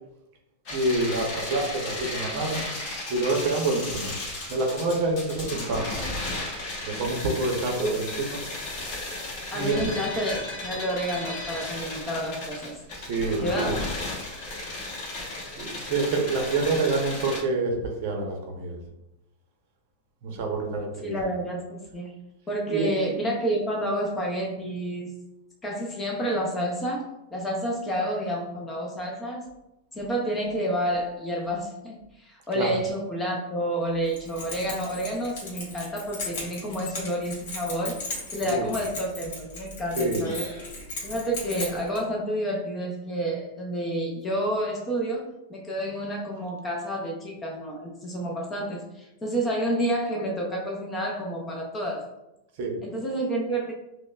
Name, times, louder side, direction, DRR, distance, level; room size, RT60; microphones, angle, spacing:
sound 1, 0.6-17.4, left 2 dB, 35° left, 1.0 m, -35 dB
voice 1, 0.7-2.6 3.1-4.1 4.5-5.9 6.8-8.1 8.3-8.4 9.5-9.9 13.0-13.8 15.6-18.8 20.2-21.1 22.7-22.9 32.5-32.7 38.4-38.7 40.0-40.2 52.6-52.8, right 2 dB, 45° right, 1 dB, 0.6 m, -27 dB
voice 2, 9.5-12.8 13.4-13.9 21.0-22.2 22.5-25.2 25.6-29.4 29.9-38.0 38.3-40.5 41.0-45.2 45.5-52.1 52.8-53.7, right 1 dB, 10° left, -1 dB, 0.4 m, -29 dB
Keys jangling, 34.1-42.0, left 2 dB, 55° left, 1.3 m, -37 dB
5.1 x 2.0 x 2.2 m, 0.91 s
supercardioid pair, 170°, 0 cm